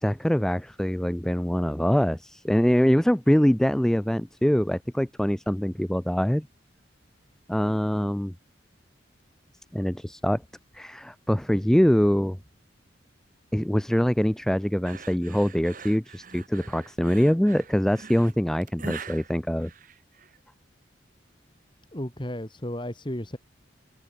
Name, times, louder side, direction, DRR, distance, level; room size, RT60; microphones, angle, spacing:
voice 1, 0.0-6.5 7.5-8.3 9.7-10.4 10.7-12.4 13.5-19.7, equal, 5° left, 0.3 m, -24 dB
sound 1, 14.8-20.4, right 4 dB, 45° right, 2.5 m, -43 dB
voice 2, 21.9-23.4, left 1 dB, 25° left, 2.4 m, -33 dB
head